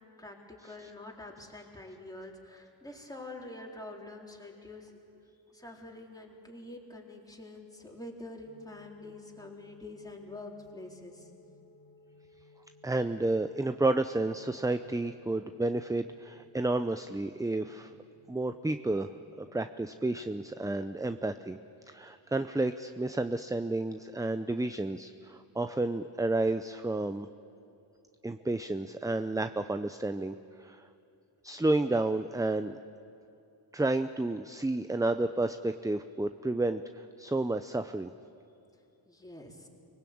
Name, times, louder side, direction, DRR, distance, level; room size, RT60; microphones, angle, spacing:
voice 1, 0.2-5.2 5.5-11.3 39.1-39.7, left 2 dB, 10° left, -1 dB, 4.1 m, -46 dB
sound 1, 8.5-20.8, left 3 dB, 55° left, 2.5 m, -61 dB
voice 2, 12.8-17.9 18.3-19.1 19.4-21.6 21.9-27.3 28.2-30.8 31.4-32.8 33.7-38.1, right 2 dB, 5° right, 10 dB, 0.6 m, -31 dB
24.0 x 20.0 x 8.7 m, 2.7 s
cardioid pair, 70°, 46 cm